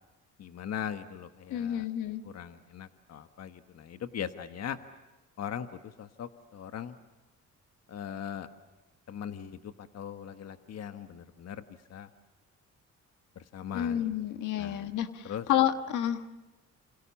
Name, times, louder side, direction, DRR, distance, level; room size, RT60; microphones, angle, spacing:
voice 1, 0.4-1.9 2.2-4.8 5.4-7.0 7.9-8.5 9.1-11.6 11.9-12.1 13.3-14.1 14.6-14.9 15.2-15.5, left 9 dB, 55° left, 8 dB, 1.4 m, -40 dB
voice 2, 1.5-2.2 13.7-16.3, left 11 dB, 80° left, 8 dB, 1.7 m, -30 dB
28.0 x 28.0 x 7.2 m, 1.1 s
cardioid pair, 90°, 30 cm